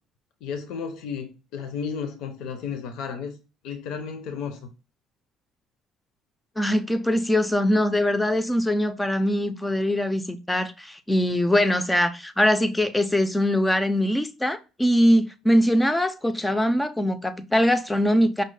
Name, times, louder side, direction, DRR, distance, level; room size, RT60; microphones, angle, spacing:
voice 1, 0.4-3.4 3.6-4.7, left 6 dB, 75° left, 0.5 m, -33 dB
voice 2, 6.6-18.4, equal, 5° left, 0.3 m, -22 dB
5.2 x 2.0 x 3.2 m
cardioid pair, 140°, 0 cm